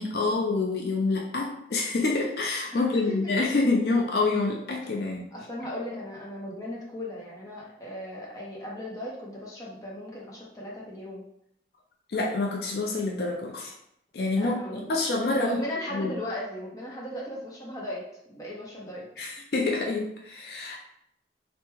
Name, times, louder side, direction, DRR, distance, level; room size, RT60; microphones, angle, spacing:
voice 1, 0.0-5.3 12.1-13.7 14.1-15.6 15.9-16.1 19.2-20.8, left 3 dB, 60° left, 0 dB, 0.4 m, -27 dB
voice 2, 2.7-3.3 5.3-11.2 14.4-14.8 15.3-19.1, left 1 dB, 20° left, -4 dB, 0.7 m, -37 dB
3.4 x 2.1 x 3.1 m, 0.76 s
head